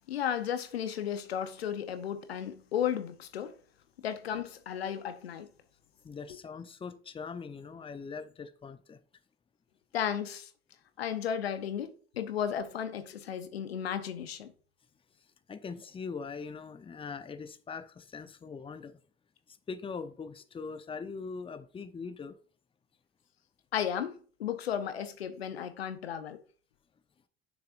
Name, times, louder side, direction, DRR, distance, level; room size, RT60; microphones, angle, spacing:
voice 1, 0.1-3.5 4.0-5.5 9.9-10.5 11.0-14.5 23.7-26.4, left 9 dB, 85° left, 0.8 m, -34 dB
voice 2, 6.0-9.0 15.5-19.0 19.5-22.4, left 5 dB, 20° left, 0.7 m, -41 dB
6.8 x 6.2 x 2.5 m
hypercardioid pair, 75°, 30 cm